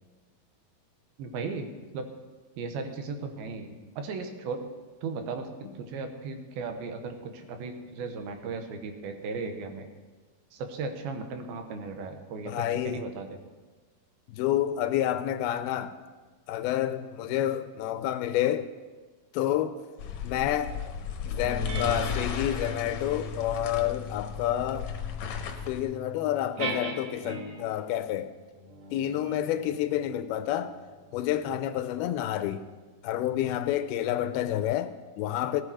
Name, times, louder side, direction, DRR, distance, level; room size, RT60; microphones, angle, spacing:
voice 1, 1.2-2.1 2.6-4.7 5.0-9.9 10.5-13.4, right 4 dB, 80° right, 3.0 m, -36 dB
voice 2, 12.5-13.0 14.3-16.0 16.5-18.7 19.3-19.8 20.2-20.7 21.3-24.9 25.7-28.3 28.9-30.8 31.1-32.6 33.0-35.6, left 12 dB, 90° left, 2.6 m, -29 dB
sound 1, 20.0-25.8, left 7 dB, 70° left, 1.7 m, -35 dB
sound 2, 21.4-27.8 28.6-33.5, equal, 50° right, 2.1 m, -40 dB
17.0 x 9.7 x 4.9 m
omnidirectional pair, 4.4 m